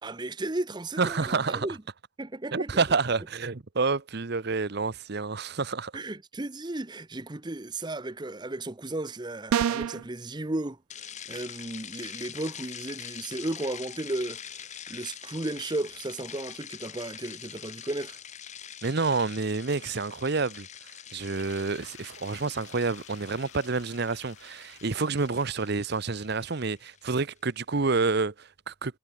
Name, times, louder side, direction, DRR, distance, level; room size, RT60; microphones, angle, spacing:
voice 1, 0.0-1.8 2.2-2.8 5.9-18.2, right 2 dB, 20° right, 0.7 m, -35 dB
voice 2, 1.0-1.7 2.5-5.9 18.8-20.7 21.1-29.0, right 4 dB, 50° right, 0.8 m, -28 dB
sound 1, 9.5-10.0, right 9 dB, 85° right, 0.3 m, -25 dB
sound 2, 10.9-27.2, left 9 dB, 35° left, 1.5 m, -44 dB
sound 3, 21.3-26.9, left 8 dB, 75° left, 6.4 m, -55 dB
head